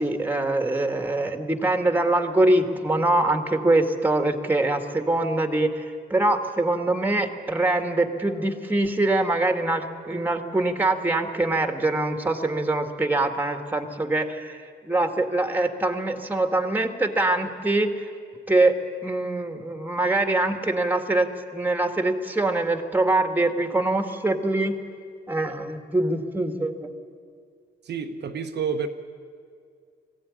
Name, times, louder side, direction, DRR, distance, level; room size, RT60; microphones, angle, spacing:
voice 1, 0.0-18.1 18.5-18.8 19.0-24.8 25.3-26.9, right 2 dB, 10° right, 6 dB, 2.0 m, -24 dB
voice 2, 27.8-28.9, right 6 dB, 60° right, 4 dB, 1.1 m, -29 dB
20.5 x 15.5 x 9.8 m, 2.2 s
cardioid pair, 90°, 20 cm